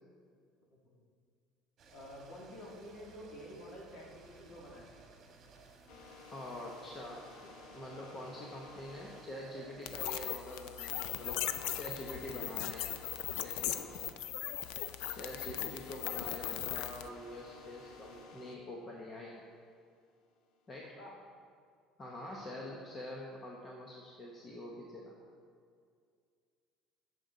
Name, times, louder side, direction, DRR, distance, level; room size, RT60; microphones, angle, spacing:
sound 1, 1.8-18.3, right 3 dB, 35° right, 1.5 m, -59 dB
voice 1, 1.9-4.9 11.6-11.8 13.7-13.9 21.0-21.2, equal, 45° left, -3 dB, 2.4 m, -50 dB
sound 2, 5.9-14.0 14.3-18.6 19.1-20.9, left 4 dB, 65° left, 1.0 m, -55 dB
voice 2, 6.3-11.4 11.7-13.0 13.4-13.9 15.1-19.4 20.7-21.0 22.0-25.1, left 1 dB, 25° left, -2 dB, 0.9 m, -45 dB
sound 3, 9.9-17.1, left 12 dB, 80° left, 0.4 m, -38 dB
16.5 x 6.8 x 3.9 m, 2.2 s
cardioid pair, 165°, 0 cm